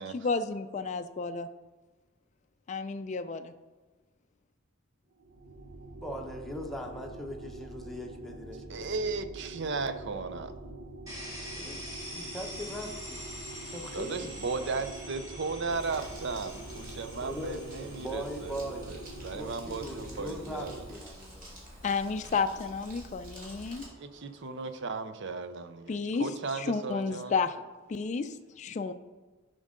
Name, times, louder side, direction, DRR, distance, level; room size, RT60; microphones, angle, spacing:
voice 1, 0.1-1.5 2.7-3.5 21.8-23.8 25.9-27.5 27.9-28.9, left 4 dB, 35° left, 8 dB, 0.3 m, -32 dB
sound 1, 5.1-21.0, right 2 dB, 90° right, 0.9 m, -45 dB
voice 2, 6.0-8.9 11.5-13.2 13.6-14.7 17.2-19.0 19.3-21.5, equal, ahead, 1 dB, 0.9 m, -40 dB
voice 3, 8.7-10.5 13.9-20.8 24.0-27.3, right 4 dB, 60° right, 10 dB, 0.6 m, -36 dB
sound 2, 11.1-24.8, equal, 15° right, 2.7 m, -47 dB
Crumpling crinkling, 15.7-23.9, equal, 40° right, 2.3 m, -49 dB
11.0 x 5.3 x 3.7 m, 1.3 s
head